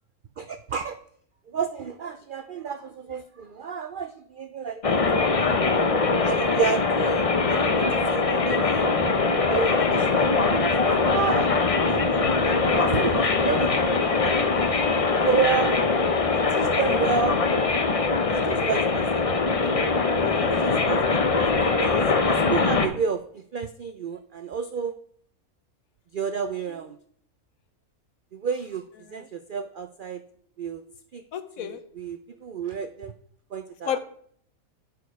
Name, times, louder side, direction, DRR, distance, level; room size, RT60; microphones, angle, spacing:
voice 1, 0.4-1.0 1.5-5.1 5.4-5.8 6.2-9.2 9.5-11.6 11.9-14.6 15.2-15.8 16.3-17.4 18.3-19.3 19.6-19.8 20.6-21.5 21.8-24.9 26.1-27.0 28.3-28.8 29.1-30.2 30.6-30.8 31.1-31.2 31.6-33.1 33.5-34.0, right 6 dB, 90° right, 10 dB, 0.4 m, -31 dB
sound 1, 4.8-22.9, left 4 dB, 35° left, 0.6 m, -22 dB
voice 2, 20.2-20.6 29.0-29.3 31.3-31.8 33.8-34.0, left 9 dB, 75° left, 11 dB, 1.2 m, -32 dB
9.4 x 6.4 x 4.6 m, 0.62 s
omnidirectional pair, 1.5 m